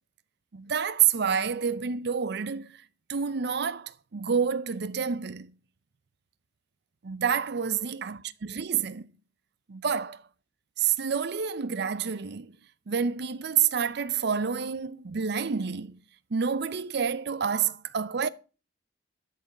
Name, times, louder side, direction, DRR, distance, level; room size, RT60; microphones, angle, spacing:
voice 1, 0.5-2.8 3.1-5.5 7.0-9.0 9.7-10.2 10.8-12.6 12.9-16.0 16.3-18.3, right 7 dB, 60° right, 0.6 m, -28 dB
12.5 x 6.2 x 5.1 m
head